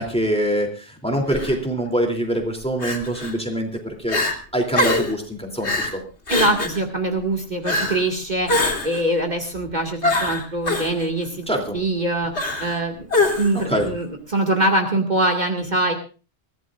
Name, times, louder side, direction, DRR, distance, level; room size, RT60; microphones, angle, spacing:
voice 1, 0.0-4.2 4.5-6.0 11.5-11.8 13.5-13.9, right 1 dB, 5° left, 2 dB, 3.0 m, -24 dB
Crying sobbing, 1.3-1.5 2.8-3.3 3.7-3.8 4.1-4.3 4.7-5.1 5.6-5.9 6.3-6.8 7.6-8.0 8.5-9.0 10.0-10.9 12.3-12.8 13.1-13.6, left 2 dB, 85° left, 3.2 m, -23 dB
voice 2, 6.3-15.9, right 1 dB, 40° right, 3 dB, 2.3 m, -23 dB
23.0 x 16.0 x 2.5 m, 0.34 s
omnidirectional pair, 1.1 m